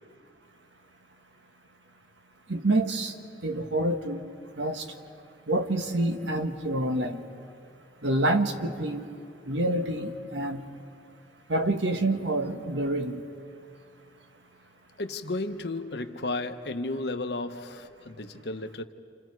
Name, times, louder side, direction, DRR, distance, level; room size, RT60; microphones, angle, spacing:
voice 1, 2.5-3.1 3.4-4.2 4.6-4.8 5.5-7.2 8.0-9.1 9.4-10.6 11.5-13.2, right 1 dB, 90° right, 6 dB, 1.4 m, -27 dB
voice 2, 15.0-18.8, left 2 dB, 65° left, 7 dB, 1.0 m, -33 dB
29.0 x 28.0 x 4.7 m, 2.4 s
head